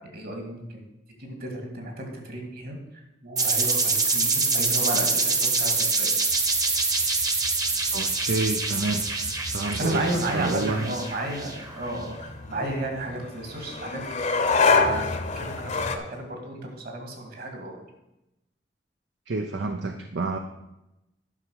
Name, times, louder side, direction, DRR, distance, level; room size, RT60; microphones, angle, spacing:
voice 1, 0.1-0.8 1.2-6.1 9.7-14.0 14.5-14.6 15.4-17.8, right 1 dB, 55° right, 3 dB, 2.4 m, -33 dB
sound 1, 3.4-11.9, right 3 dB, 20° right, 1.0 m, -25 dB
sound 2, 6.3-16.0, left 4 dB, 40° left, 0.9 m, -29 dB
voice 2, 7.9-9.0 9.5-10.1 10.3-10.9 19.3-20.4, right 2 dB, 70° right, 5 dB, 0.7 m, -28 dB
11.0 x 6.0 x 6.4 m, 0.94 s
head